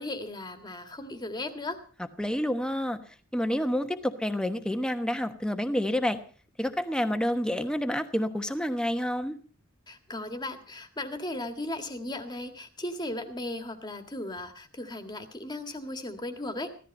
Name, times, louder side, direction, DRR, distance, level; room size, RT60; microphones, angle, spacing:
voice 1, 0.0-1.8 9.9-16.7, left 1 dB, 20° left, 7 dB, 1.8 m, -36 dB
voice 2, 2.2-3.0 3.3-6.2 6.6-9.3, equal, 5° left, 8 dB, 1.1 m, -28 dB
16.0 x 13.5 x 5.4 m, 0.40 s
head